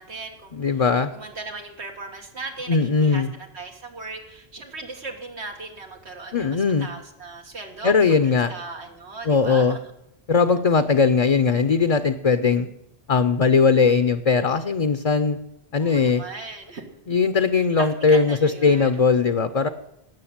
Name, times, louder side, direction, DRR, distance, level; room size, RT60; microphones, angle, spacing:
voice 1, 0.0-0.9 1.1-9.8 15.8-16.8 17.5-19.0, right 3 dB, 85° right, 2 dB, 2.0 m, -38 dB
voice 2, 0.5-1.1 2.7-3.3 6.3-6.9 7.8-8.5 9.3-9.8 10.3-12.7 13.1-15.4 15.7-16.2 17.1-19.7, left 5 dB, 40° left, 10 dB, 0.6 m, -19 dB
18.5 x 6.5 x 8.8 m, 0.83 s
omnidirectional pair, 1.1 m